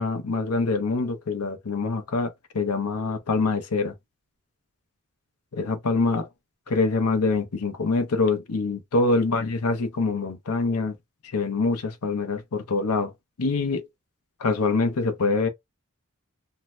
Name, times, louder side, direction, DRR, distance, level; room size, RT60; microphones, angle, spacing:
voice 1, 0.0-3.9 5.5-6.3 6.7-10.9 11.3-13.1 13.4-13.9 14.4-15.5, left 3 dB, 85° left, 0.7 m, -25 dB
2.7 x 2.1 x 3.0 m
head